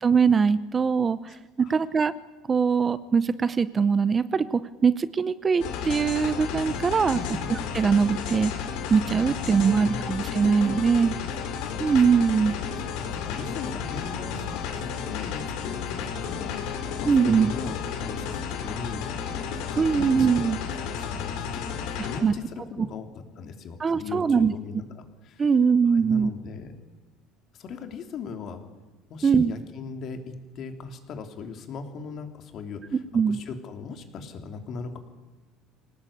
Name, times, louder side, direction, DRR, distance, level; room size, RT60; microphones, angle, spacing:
voice 1, 0.0-2.1 2.5-7.2 7.5-8.5 8.9-11.1 11.8-12.5 17.1-17.5 19.8-20.6 22.2-22.3 22.8-22.9 23.8-24.5 25.4-26.3 29.2-29.5 33.1-33.4, right 5 dB, 20° right, 15 dB, 0.7 m, -22 dB
sound 1, 5.6-22.2, left 7 dB, 65° left, 4.4 m, -32 dB
voice 2, 7.1-7.5 9.6-10.2 11.6-12.0 12.4-12.6 13.1-14.7 15.0-25.5 25.9-26.7 27.5-28.6 29.1-33.0 33.3-35.0, left 5 dB, 40° left, 6 dB, 3.1 m, -39 dB
25.5 x 18.0 x 8.6 m, 1.2 s
cardioid pair, 145°, 0 cm